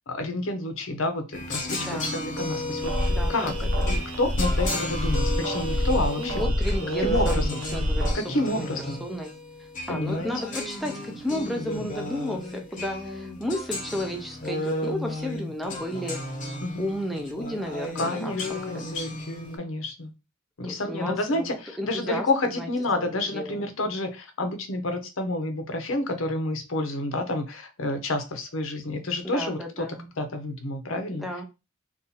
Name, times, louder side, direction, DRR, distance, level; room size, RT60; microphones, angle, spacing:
voice 1, 0.1-2.9 3.3-3.5 3.9-6.5 7.0-7.6 8.1-9.0 9.9-10.3 11.8-11.9 16.6-16.9 17.9-19.2 19.6-20.1 20.6-29.8 30.2-31.2, left 2 dB, 75° left, 6 dB, 0.7 m, -29 dB
sound 1, 1.3-19.6, left 1 dB, 40° left, 0.8 m, -34 dB
voice 2, 1.8-2.1 3.1-3.9 6.2-7.4 7.7-9.3 9.6-16.3 16.8-18.3 18.7-18.9 20.6-21.5 21.8-22.3 22.6-22.7 23.0-23.7 29.2-30.1 31.1-31.4, left 1 dB, ahead, 2 dB, 0.5 m, -33 dB
sound 2, 2.8-8.1, left 1 dB, 85° right, 0.8 m, -26 dB
2.7 x 2.4 x 3.9 m, 0.28 s
head